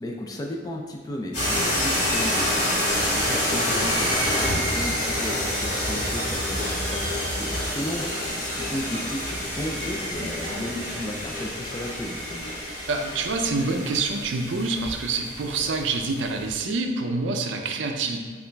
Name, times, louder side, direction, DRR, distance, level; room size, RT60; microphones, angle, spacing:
voice 1, 0.0-12.5, left 1 dB, 20° left, 1 dB, 0.3 m, -34 dB
sound 1, 1.3-16.5, equal, 45° left, 1.4 m, -27 dB
voice 2, 12.9-18.2, right 3 dB, 75° right, 4 dB, 0.4 m, -26 dB
6.8 x 2.4 x 2.2 m, 1.5 s
head